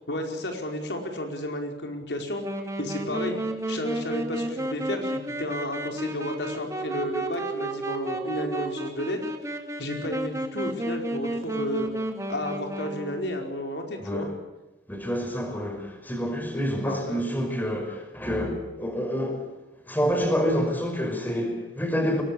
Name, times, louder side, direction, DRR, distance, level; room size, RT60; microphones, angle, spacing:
voice 1, 0.1-2.4 2.8-3.4 3.7-9.2 9.5-11.9 12.3-14.3 16.9-17.2, left 1 dB, 75° left, 4.8 m, -32 dB
Wind instrument woodwind instrument, 2.4-13.3, right 2 dB, 15° right, 2.4 m, -32 dB
voice 2, 14.9-19.4 19.9-22.2, equal, 10° left, 5.3 m, -27 dB
22.5 x 19.0 x 8.5 m
head